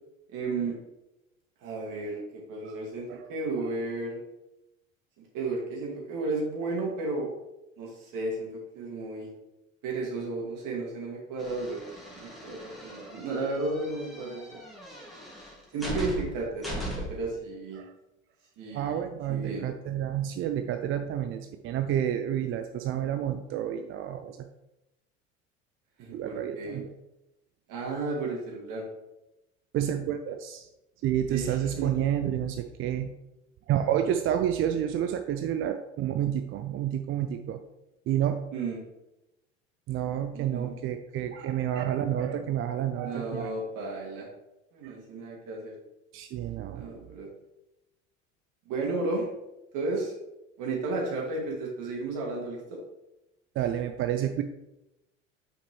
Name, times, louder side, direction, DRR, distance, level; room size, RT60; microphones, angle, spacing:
voice 1, 0.3-0.8 1.6-4.2 5.3-7.3 7.8-9.3 9.8-11.8 12.1-14.6 15.7-17.8 18.6-19.7 26.0-26.8 27.7-28.9 31.3-32.0 38.5-38.8 40.3-40.8 43.0-44.3 44.7-45.7 46.7-47.3 48.7-49.3 49.7-50.1 50.6-52.8, right 3 dB, 55° right, -1 dB, 2.2 m, -33 dB
sound 1, 11.4-17.3, equal, ahead, 2.0 m, -39 dB
voice 2, 18.7-24.5 26.1-26.9 29.7-30.7 31.0-33.1 33.7-37.6 38.1-38.4 39.9-43.5 44.8-44.9 46.1-46.8 53.6-54.4, right 10 dB, 35° right, 7 dB, 0.4 m, -29 dB
5.8 x 5.1 x 3.1 m, 0.93 s
figure-of-eight pair, 70°, 39 cm